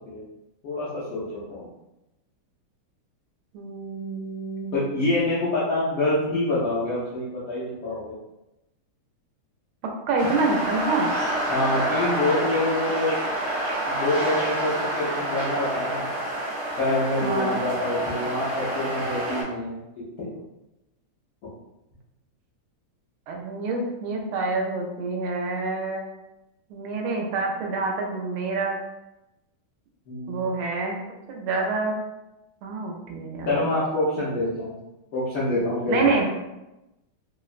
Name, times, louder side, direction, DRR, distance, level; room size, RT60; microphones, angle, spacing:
voice 1, 0.6-1.7 4.7-8.1 11.5-13.2 13.9-16.1 16.8-20.3 30.1-30.5 33.4-34.8 35.1-36.0, left 2 dB, 75° left, -10 dB, 0.8 m, -26 dB
voice 2, 3.5-4.8 10.1-11.1 17.2-17.6 23.3-26.0 26.7-28.8 30.3-31.0 31.3-31.9 32.6-33.7 35.9-36.3, right 3 dB, 80° right, 0 dB, 1.4 m, -27 dB
sound 1, 10.2-19.4, right 1 dB, 55° right, 0.7 m, -28 dB
3.5 x 2.0 x 2.4 m, 0.96 s
omnidirectional pair, 2.3 m